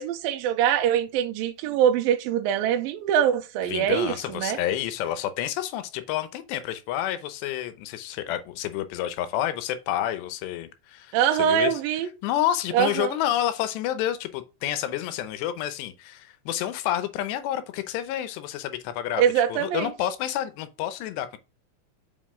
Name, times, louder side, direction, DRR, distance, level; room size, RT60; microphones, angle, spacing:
voice 1, 0.0-4.6 11.1-12.1 12.7-13.2 19.2-19.9, right 9 dB, 70° right, 2.4 m, -23 dB
voice 2, 3.7-11.8 12.2-19.2 19.5-21.4, left 12 dB, 80° left, 3.0 m, -29 dB
7.5 x 5.4 x 3.7 m
omnidirectional pair, 4.9 m